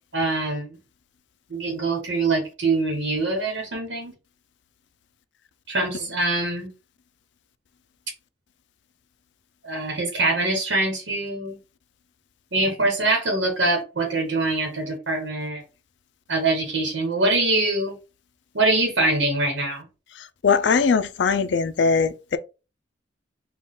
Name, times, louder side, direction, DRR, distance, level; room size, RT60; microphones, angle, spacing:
voice 1, 0.1-0.8 1.5-4.1 5.7-6.7 9.6-11.6 12.5-15.6 16.3-18.0 18.5-19.8, right 2 dB, 75° right, 1.2 m, -24 dB
voice 2, 20.2-22.4, left 5 dB, 70° left, 0.4 m, -21 dB
3.9 x 2.4 x 3.6 m
head